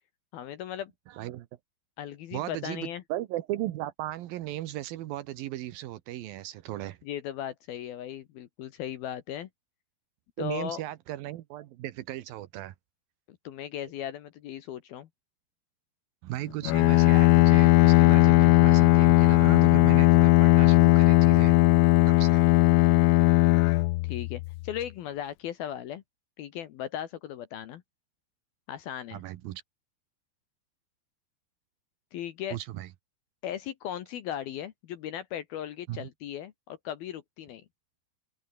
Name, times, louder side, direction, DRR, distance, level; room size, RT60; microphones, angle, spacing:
voice 1, 0.3-0.9 2.0-3.0 7.0-9.5 10.4-10.8 13.3-15.1 24.0-26.0 26.4-27.8 28.7-29.2 32.1-32.6 33.4-37.6, left 10 dB, 70° left, 2.5 m, -37 dB
voice 2, 1.1-1.5 2.3-7.0 10.4-12.7 16.2-21.7 22.1-22.4 29.1-29.6 32.5-32.9 35.9-36.1, right 14 dB, 80° right, 2.1 m, -36 dB
Bowed string instrument, 16.7-24.6, left 21 dB, 90° left, 3.4 m, -19 dB
open air
omnidirectional pair, 5.7 m